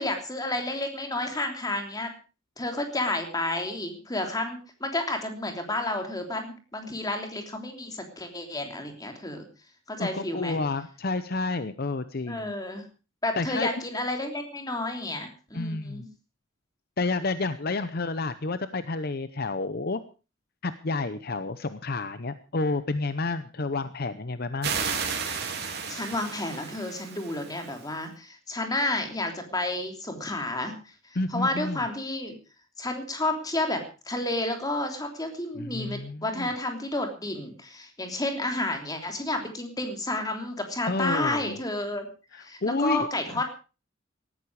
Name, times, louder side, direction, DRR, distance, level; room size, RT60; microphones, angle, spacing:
voice 1, 0.0-2.1 2.6-9.4 9.9-10.6 12.3-12.8 13.2-16.0 25.9-30.7 31.3-32.3 32.8-42.1 42.4-43.4, left 2 dB, 20° left, 5 dB, 3.2 m, -31 dB
voice 2, 10.0-12.5 13.3-13.9 15.5-16.0 17.0-20.0 20.6-24.7 31.1-31.8 35.6-36.5 40.9-41.6 42.3-43.1, left 3 dB, 50° left, 12 dB, 0.8 m, -30 dB
sound 1, 24.6-27.9, right 6 dB, 55° right, 3.8 m, -33 dB
18.0 x 14.0 x 4.8 m, 0.35 s
head